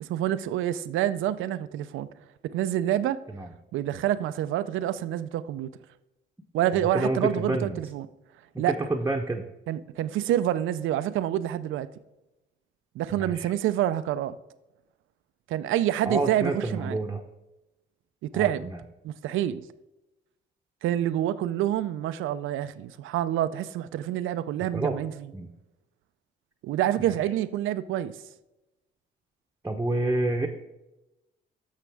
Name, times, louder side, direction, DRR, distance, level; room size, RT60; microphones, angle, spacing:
voice 1, 0.0-2.1 2.4-3.2 3.7-5.7 6.5-8.1 8.6-8.8 9.7-11.9 12.9-14.4 15.5-17.0 18.2-18.7 19.0-19.7 20.8-25.3 26.6-28.2, right 12 dB, 85° right, 0.5 m, -27 dB
voice 2, 6.7-7.8 8.5-9.4 13.1-13.5 16.1-17.2 18.3-18.8 24.7-25.0 25.3-25.5 29.6-30.5, right 2 dB, 10° right, 0.8 m, -28 dB
11.0 x 6.6 x 3.5 m
cardioid pair, 90°, 20 cm